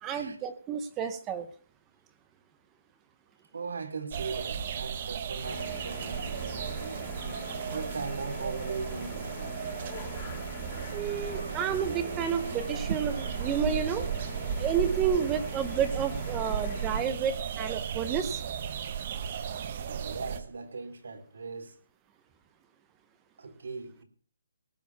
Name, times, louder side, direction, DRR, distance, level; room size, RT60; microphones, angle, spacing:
voice 1, 0.0-1.5 10.9-14.0 14.6-18.4, right 7 dB, 10° right, 0.8 m, -30 dB
voice 2, 3.5-9.6 19.8-21.8 23.4-24.0, right 4 dB, 70° right, 3.4 m, -39 dB
sound 1, 4.1-20.4, right 8 dB, 30° right, 1.1 m, -35 dB
sound 2, 5.4-17.1, left 5 dB, 20° left, 2.4 m, -44 dB
sound 3, 10.3-15.2, right 3 dB, 90° right, 3.2 m, -44 dB
18.5 x 7.0 x 7.0 m
hypercardioid pair, 175°, 0 cm